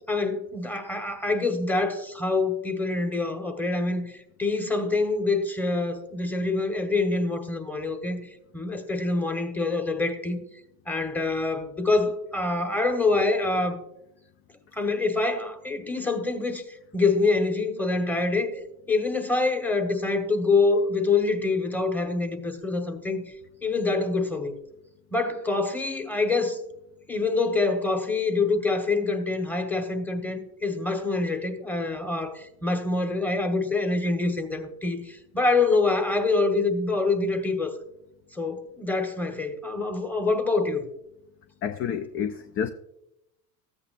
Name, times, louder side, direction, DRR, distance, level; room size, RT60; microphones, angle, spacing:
voice 1, 0.1-4.1 4.4-8.2 8.5-10.4 10.9-13.8 14.8-16.6 16.9-18.5 18.9-23.2 23.6-24.6 25.1-26.6 27.1-37.7 38.4-40.8, left 3 dB, 5° left, 1.1 m, -25 dB
voice 2, 41.6-42.7, left 8 dB, 30° left, 0.4 m, -29 dB
14.0 x 8.7 x 2.5 m
hypercardioid pair, 95°, 47 cm